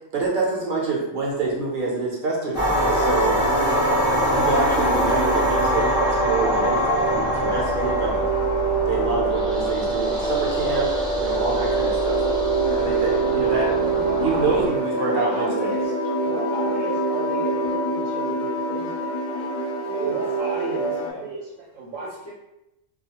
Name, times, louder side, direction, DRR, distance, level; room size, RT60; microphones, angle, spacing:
voice 1, 0.1-3.4 4.0-8.3 8.8-12.2 12.6-13.7 14.2-15.7, right 3 dB, 50° right, -3 dB, 0.7 m, -26 dB
sound 1, 2.5-14.7, equal, 5° right, 0.5 m, -25 dB
sound 2, 2.7-21.1, right 2 dB, 70° left, 0.4 m, -25 dB
voice 2, 13.6-14.7 15.0-15.9 16.2-19.5 20.1-20.9 21.2-21.4 21.7-22.1, right 3 dB, 80° right, -4 dB, 0.9 m, -33 dB
voice 3, 19.4-20.4 20.6-21.3 21.8-22.3, right 3 dB, 35° left, -10 dB, 0.9 m, -37 dB
2.4 x 2.3 x 2.8 m, 0.90 s
omnidirectional pair, 1.3 m